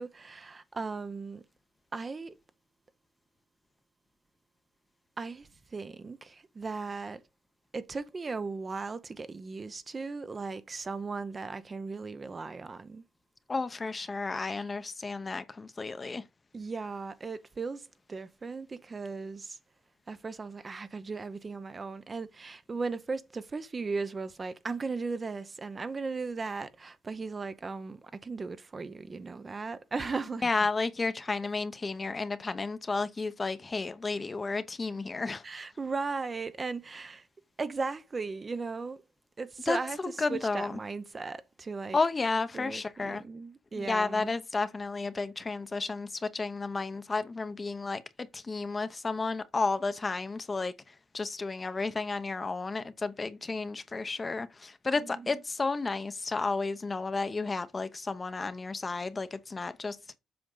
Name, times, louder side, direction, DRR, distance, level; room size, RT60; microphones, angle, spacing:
voice 1, 0.0-1.4 1.9-2.3 5.2-7.2 7.7-13.0 14.4-14.7 16.5-19.6 20.1-30.7 35.4-37.3 37.6-39.0 39.4-42.0 42.5-44.3 54.9-55.4, right 4 dB, 30° right, 0.8 m, -37 dB
voice 2, 13.5-16.2 30.4-35.4 39.7-40.8 41.9-43.2 43.9-48.0 48.3-60.2, left 3 dB, 30° left, 0.8 m, -32 dB
7.8 x 5.2 x 3.9 m
cardioid pair, 90°, 0 cm